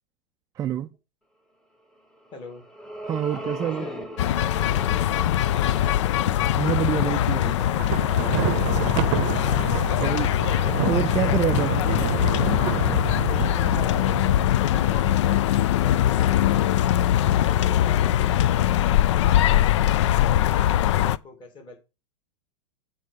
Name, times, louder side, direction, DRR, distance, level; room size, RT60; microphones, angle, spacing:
voice 1, 0.6-0.9 3.0-3.9 6.2-7.5 10.0-10.3 10.9-11.8, right 10 dB, 20° right, 0.3 m, -27 dB
sound 1, 2.2-8.7, right 1 dB, 5° left, 1.1 m, -40 dB
voice 2, 2.3-2.6 3.3-4.0 6.9-8.0 13.3-15.3 15.8-16.7 17.4-18.7 19.7-21.8, left 3 dB, 30° left, 2.7 m, -42 dB
sound 2, 4.2-21.2, left 12 dB, 65° left, 0.4 m, -22 dB
Thunder, 7.6-14.9, right 12 dB, 45° right, 0.7 m, -29 dB
8.3 x 3.6 x 6.6 m
hypercardioid pair, 110°, 16 cm